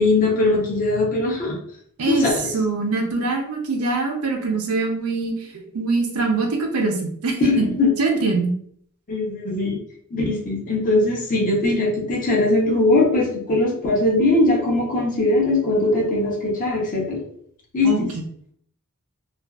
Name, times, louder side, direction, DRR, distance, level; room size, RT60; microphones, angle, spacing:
voice 1, 0.0-1.5 2.1-2.5 7.4-7.9 9.1-9.8 10.1-17.2 17.7-18.1, left 2 dB, 35° left, -3 dB, 0.7 m, -20 dB
voice 2, 2.0-7.7 8.0-8.5 17.8-18.2, right 3 dB, 75° right, 2 dB, 0.5 m, -23 dB
2.5 x 2.3 x 2.3 m, 0.64 s
head